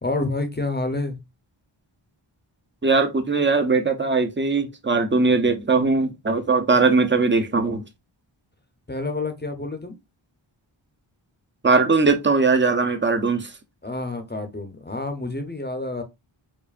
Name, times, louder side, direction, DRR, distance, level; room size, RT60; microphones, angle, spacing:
voice 1, 0.0-1.2 8.9-10.0 13.8-16.0, left 2 dB, 20° left, 0.7 m, -28 dB
voice 2, 2.8-7.8 11.6-13.5, right 4 dB, 25° right, 0.7 m, -20 dB
4.7 x 2.5 x 2.5 m
wide cardioid pair, 65°, 49 cm